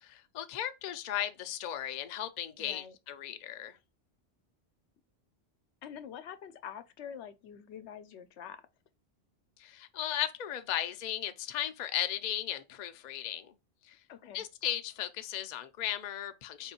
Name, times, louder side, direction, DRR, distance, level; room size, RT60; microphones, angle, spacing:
voice 1, 0.0-3.8 9.6-13.5 13.9-14.0 14.3-16.7, left 11 dB, 55° left, 0.5 m, -36 dB
voice 2, 2.6-3.0 5.8-8.6 14.1-14.5, left 8 dB, 85° left, 0.9 m, -46 dB
4.2 x 3.0 x 2.8 m
omnidirectional pair, 1.1 m